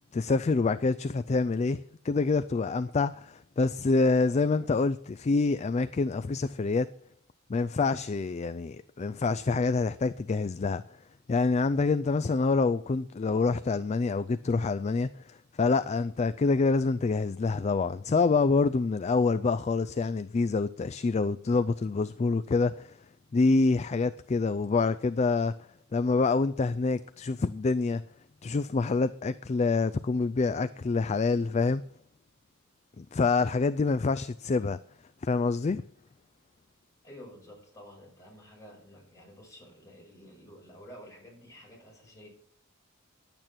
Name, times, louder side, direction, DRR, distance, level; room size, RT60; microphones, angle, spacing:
voice 1, 0.1-6.9 7.5-10.8 11.3-23.0 23.3-25.5 25.9-28.0 28.4-31.8 33.0-34.8 35.2-35.8, left 3 dB, 30° left, 0.3 m, -26 dB
voice 2, 37.0-42.3, equal, 15° left, 6.0 m, -50 dB
10.5 x 8.9 x 5.8 m
head